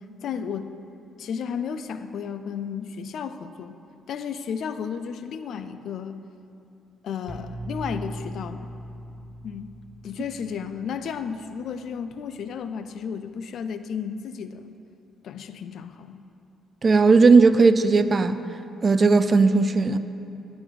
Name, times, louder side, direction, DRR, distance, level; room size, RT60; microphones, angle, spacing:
voice 1, 0.2-0.7 1.2-3.8 4.1-6.3 7.0-8.7 9.4-9.7 10.0-14.7 15.2-16.3, left 7 dB, 70° left, 0.3 m, -33 dB
sound 1, 7.3-13.1, equal, 5° left, 0.8 m, -40 dB
voice 2, 16.8-18.4 18.8-20.0, right 4 dB, 35° right, 0.3 m, -17 dB
11.5 x 4.0 x 4.9 m
cardioid pair, 90°, 0 cm